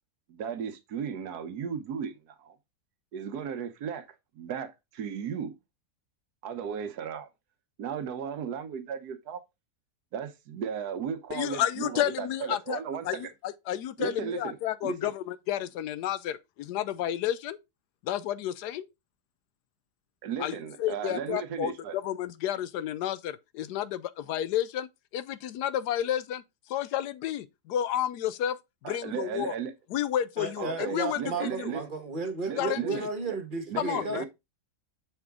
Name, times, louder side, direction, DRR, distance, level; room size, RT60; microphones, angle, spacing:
voice 1, 0.3-2.1 2.4-2.6 3.1-4.1 4.3-5.6 6.4-7.3 7.8-9.4 10.1-13.3 14.0-14.6 14.8-14.9 20.2-21.9 28.8-29.7 30.6-31.8 32.5-33.4 33.7-34.3, right 7 dB, 80° right, 1.3 m, -35 dB
voice 2, 11.3-12.8 13.0-17.6 18.0-18.9 20.4-26.4 26.7-28.6 28.8-29.5 29.9-31.7 32.6-33.1 33.8-34.3, left 11 dB, 85° left, 1.2 m, -31 dB
voice 3, 30.4-34.3, right 3 dB, 35° right, 1.3 m, -34 dB
6.8 x 4.5 x 3.6 m
omnidirectional pair, 1.7 m